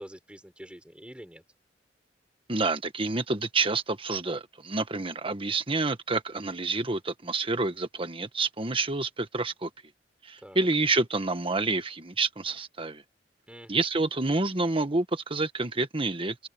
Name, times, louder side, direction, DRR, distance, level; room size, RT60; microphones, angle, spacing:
voice 1, 0.0-1.4 10.4-10.7 13.5-13.8, equal, 5° right, 6.2 m, -46 dB
voice 2, 2.5-9.7 10.2-13.0 13.7-16.5, right 3 dB, 30° right, 1.5 m, -28 dB
open air
head